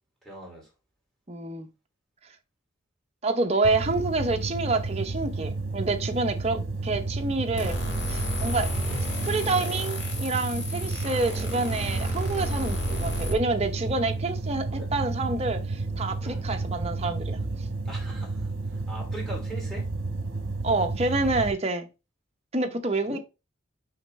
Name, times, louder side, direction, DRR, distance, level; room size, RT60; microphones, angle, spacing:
voice 1, 0.2-0.7 8.9-9.0 14.7-14.9 16.2-16.5 17.8-19.9 23.1-23.2, right 1 dB, ahead, 2.4 m, -41 dB
voice 2, 1.3-1.7 3.2-7.8 8.1-8.7 9.3-17.4 20.6-21.9 22.5-23.2, right 3 dB, 30° right, 0.8 m, -28 dB
sound 1, 3.6-21.5, right 3 dB, 70° right, 1.0 m, -32 dB
sound 2, 7.6-13.3, equal, 60° left, 1.9 m, -32 dB
5.8 x 5.4 x 3.2 m
head